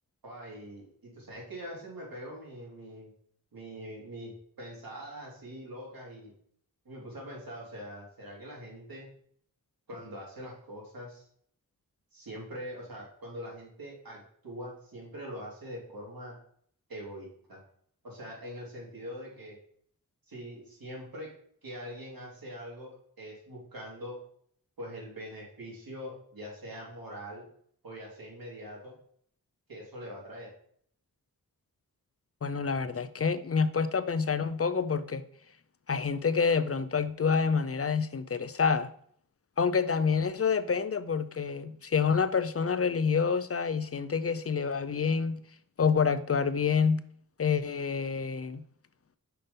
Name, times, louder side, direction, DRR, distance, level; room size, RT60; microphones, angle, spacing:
voice 1, 0.2-3.1 3.5-6.3 6.8-9.1 9.9-11.3 12.1-16.3 16.9-17.6 18.0-19.6 20.3-21.3 21.6-24.2 24.8-27.4 27.8-28.9 29.7-30.5, equal, 80° right, 3.1 m, -43 dB
voice 2, 32.4-35.2 35.9-38.9 39.6-45.4 45.8-47.0 47.4-48.6, left 5 dB, 45° left, 0.5 m, -27 dB
5.7 x 5.3 x 5.2 m
wide cardioid pair, 100°, 34 cm